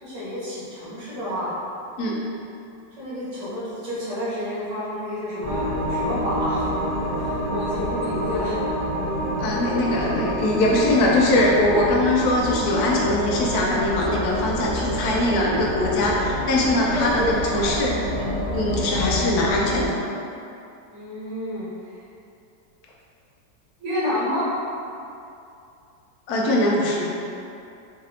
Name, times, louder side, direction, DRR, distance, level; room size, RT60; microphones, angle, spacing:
voice 1, 0.0-1.5 3.0-6.6 7.1-8.6 16.8-17.6 20.9-21.7 23.8-24.5, left 1 dB, 75° right, -12 dB, 1.7 m, -29 dB
sound 1, 5.4-19.9, equal, 50° right, 1.2 m, -27 dB
voice 2, 9.4-18.3 18.5-20.0 26.3-27.1, left 1 dB, 70° left, -3 dB, 1.0 m, -22 dB
4.0 x 2.6 x 2.7 m, 2.6 s
omnidirectional pair, 2.0 m